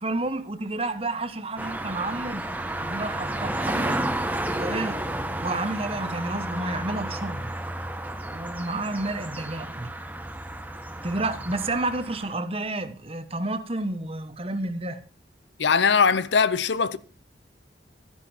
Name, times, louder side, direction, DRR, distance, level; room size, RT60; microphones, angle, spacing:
voice 1, 0.0-2.4 2.8-4.0 4.5-5.0 5.4-7.5 8.3-9.9 11.0-15.0, right 2 dB, 30° right, 1.1 m, -30 dB
sound 1, 1.6-12.3, right 1 dB, 10° right, 1.1 m, -32 dB
voice 2, 15.6-17.0, left 5 dB, 75° left, 0.7 m, -21 dB
13.5 x 10.5 x 4.4 m
head